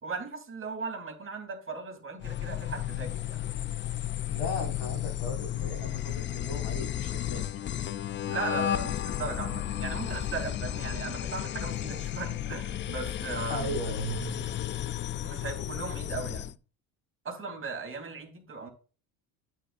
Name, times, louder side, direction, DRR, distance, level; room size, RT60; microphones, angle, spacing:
voice 1, 0.0-3.4 8.3-13.8 15.2-16.5 17.2-18.7, right 4 dB, 30° right, 3.0 m, -37 dB
sound 1, 2.2-16.5, left 11 dB, 30° left, 0.4 m, -33 dB
voice 2, 4.2-7.4 13.5-14.5, equal, 80° left, 4.9 m, -37 dB
9.0 x 9.0 x 2.5 m
supercardioid pair, 95°, 43 cm